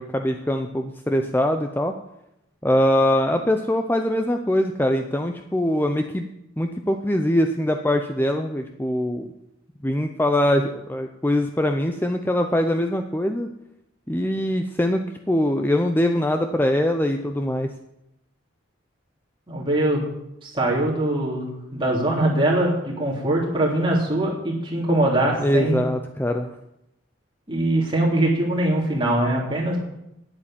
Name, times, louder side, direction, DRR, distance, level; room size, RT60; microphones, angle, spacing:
voice 1, 0.0-1.9 2.6-6.2 6.6-9.3 9.8-13.5 14.1-17.7 25.4-26.5, left 1 dB, 10° left, 5 dB, 0.5 m, -22 dB
voice 2, 19.5-20.0 20.4-25.8 27.5-29.8, right 1 dB, 25° right, -3 dB, 3.4 m, -22 dB
9.9 x 8.5 x 8.9 m, 0.87 s
head